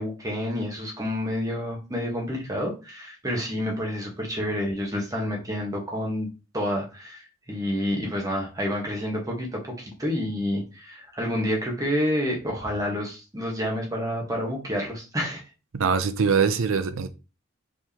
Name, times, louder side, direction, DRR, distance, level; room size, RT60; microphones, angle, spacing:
voice 1, 0.0-15.4, equal, 20° right, 1.4 m, -29 dB
voice 2, 15.7-17.1, right 5 dB, 85° right, 0.5 m, -23 dB
4.5 x 3.5 x 2.9 m
head